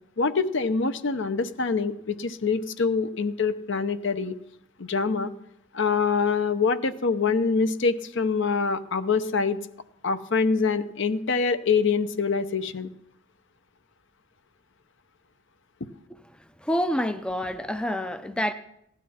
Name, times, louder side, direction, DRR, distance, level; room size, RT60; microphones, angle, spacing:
voice 1, 0.2-4.4 4.8-5.3 5.7-9.6 10.0-12.9, left 4 dB, 60° left, 0.7 m, -25 dB
voice 2, 16.6-18.5, equal, 5° left, 0.4 m, -27 dB
16.0 x 11.5 x 4.3 m
head